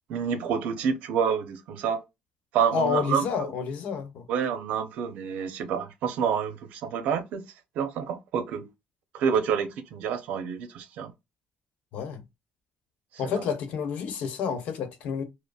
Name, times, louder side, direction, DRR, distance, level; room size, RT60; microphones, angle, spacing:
voice 1, 0.1-2.0 2.5-3.5 4.3-7.4 7.8-8.7 9.1-11.1, right 7 dB, 75° right, 0.7 m, -28 dB
voice 2, 2.7-4.3 11.9-12.2 13.2-15.2, left 6 dB, 70° left, 0.9 m, -29 dB
5.1 x 2.0 x 2.3 m
cardioid pair, 120°, 3 cm